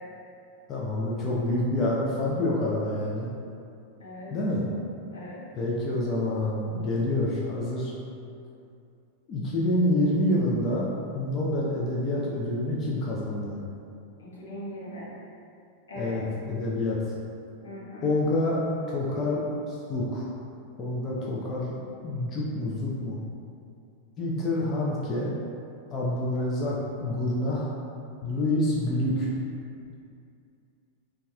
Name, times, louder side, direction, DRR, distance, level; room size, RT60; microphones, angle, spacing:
voice 1, 0.7-3.3 4.3-4.6 5.5-7.9 9.3-10.9 11.1-13.6 16.0-17.1 18.0-20.3 20.8-21.8 22.0-23.2 24.2-25.3 25.9-27.7 28.2-29.3, left 1 dB, 30° left, -5 dB, 0.4 m, -27 dB
voice 2, 4.0-4.3 5.1-5.4 14.2-15.1 15.9-16.2 17.6-18.1, left 1 dB, 70° left, -6 dB, 0.7 m, -40 dB
4.0 x 2.3 x 2.3 m, 2.5 s
figure-of-eight pair, 90°, 0 cm